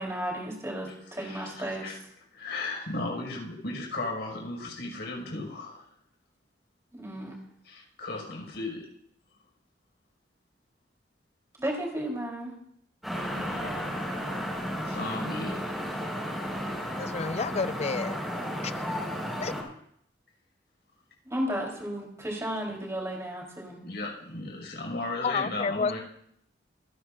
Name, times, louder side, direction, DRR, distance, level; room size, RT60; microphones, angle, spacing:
voice 1, 0.0-2.0 6.9-7.4 11.6-12.5 21.3-23.8, equal, 15° right, -2 dB, 3.9 m, -33 dB
voice 2, 1.2-2.0 2.3-5.8 7.7-8.8 13.4-13.9 14.8-15.5 23.8-26.0, left 2 dB, 65° left, 0 dB, 5.9 m, -35 dB
sound 1, 13.0-19.6, equal, ahead, 5.3 m, -33 dB
voice 3, 17.0-18.2 18.6-18.7 19.4-19.5 25.2-26.0, left 5 dB, 35° left, 15 dB, 0.4 m, -30 dB
27.0 x 11.0 x 2.6 m, 0.71 s
head